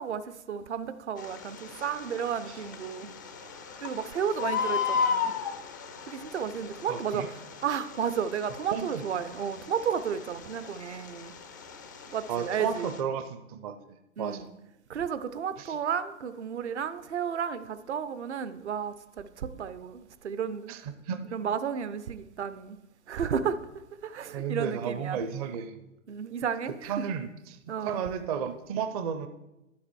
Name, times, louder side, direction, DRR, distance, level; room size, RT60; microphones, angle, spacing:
voice 1, 0.0-3.1 3.8-5.3 6.0-11.3 12.1-12.9 14.2-14.5 14.9-20.8 21.3-22.8 23.1-23.6 24.0-25.2 26.1-27.1 27.7-28.0, right 7 dB, 60° right, 12 dB, 0.8 m, -33 dB
Bird, 1.2-13.0, left 6 dB, 15° left, 0.3 m, -36 dB
voice 2, 6.9-7.3 8.7-9.1 12.3-14.5 15.6-15.8 20.7-21.2 24.3-25.8 26.8-27.6 27.8-29.3, right 7 dB, 30° right, 8 dB, 0.6 m, -33 dB
11.0 x 7.3 x 4.6 m, 0.97 s
figure-of-eight pair, 115°, 39 cm